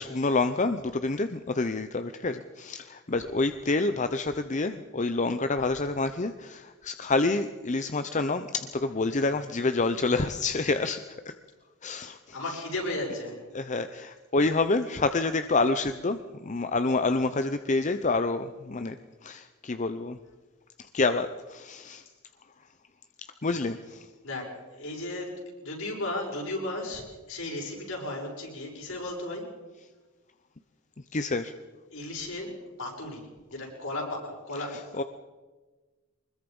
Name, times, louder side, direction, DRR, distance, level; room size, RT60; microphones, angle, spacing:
voice 1, 0.0-11.0 11.3-11.4 11.8-12.4 13.5-19.0 19.2-20.2 20.9-22.0 23.4-24.0 31.1-31.5 34.7-35.0, left 3 dB, 35° left, 9 dB, 0.7 m, -28 dB
voice 2, 12.3-13.4 24.2-25.3 25.6-29.4 31.9-32.5 32.8-35.1, left 2 dB, 70° left, -1 dB, 6.6 m, -35 dB
24.5 x 21.0 x 5.4 m, 1.3 s
head